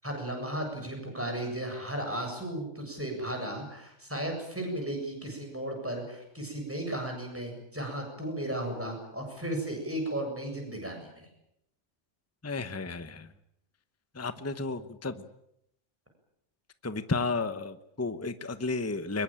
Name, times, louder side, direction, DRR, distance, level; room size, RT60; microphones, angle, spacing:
voice 1, 0.0-11.3, right 1 dB, 10° right, 3 dB, 7.6 m, -35 dB
voice 2, 12.4-13.3 14.1-15.3 16.8-19.2, left 3 dB, 15° left, 11 dB, 0.9 m, -33 dB
23.5 x 21.5 x 8.9 m, 0.77 s
omnidirectional pair, 1.3 m